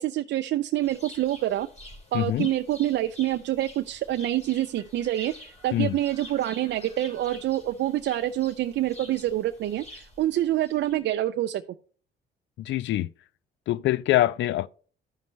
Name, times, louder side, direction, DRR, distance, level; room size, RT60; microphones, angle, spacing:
voice 1, 0.0-1.7 2.1-5.3 5.6-11.6, right 13 dB, 65° right, 0.4 m, -26 dB
sound 1, 0.8-11.2, left 1 dB, 35° left, 2.9 m, -48 dB
voice 2, 2.1-2.5 5.7-6.0 12.6-13.1 13.7-14.7, left 14 dB, 70° left, 0.4 m, -24 dB
13.0 x 5.3 x 3.2 m
cardioid pair, 90°, 20 cm